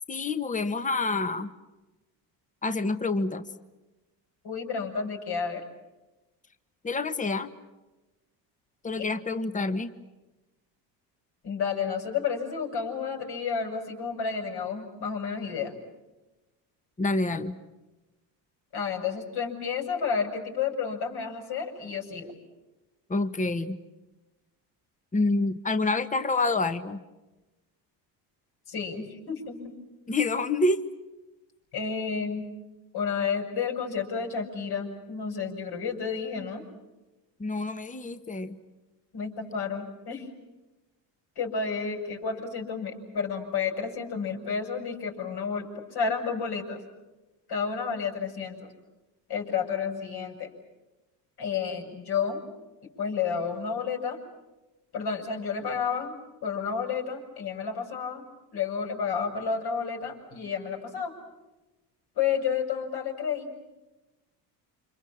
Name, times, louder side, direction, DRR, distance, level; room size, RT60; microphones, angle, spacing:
voice 1, 0.1-1.5 2.6-3.5 6.8-7.5 8.8-9.9 17.0-17.6 23.1-23.8 25.1-27.0 30.1-30.8 37.4-38.6, left 3 dB, 15° left, 10 dB, 1.5 m, -27 dB
voice 2, 4.4-5.6 11.4-15.8 18.7-22.3 28.7-29.7 31.7-32.5 32.9-36.6 39.1-40.3 41.4-46.8 47.5-48.7 49.3-50.5 51.4-52.4 53.0-54.2 54.9-56.1 56.4-58.2 58.5-61.1 62.2-63.5, left 6 dB, 55° left, 2 dB, 6.9 m, -31 dB
29.0 x 26.5 x 7.4 m, 1.1 s
cardioid pair, 105°, 45 cm